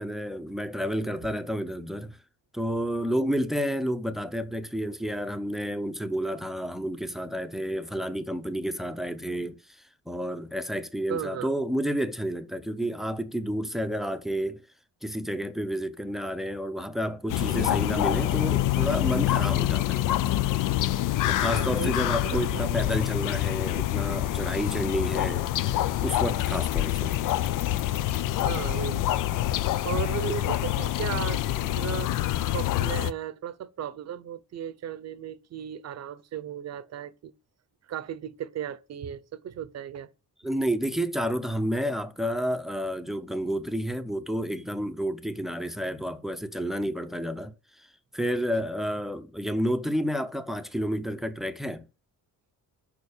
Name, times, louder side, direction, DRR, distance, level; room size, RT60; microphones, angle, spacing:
voice 1, 0.0-2.2 2.5-14.6 15.0-20.0 21.3-27.2 30.3-30.4 40.4-47.9 48.1-51.9, equal, ahead, 0.6 m, -30 dB
voice 2, 11.1-11.5 21.5-22.9 27.4-27.5 28.3-29.1 29.8-31.4 31.8-32.1 32.5-37.3 37.9-40.1, right 9 dB, 50° right, 0.8 m, -36 dB
sound 1, 17.3-33.1, left 14 dB, 65° left, 0.5 m, -26 dB
7.0 x 5.8 x 6.5 m
cardioid pair, 155°, 34 cm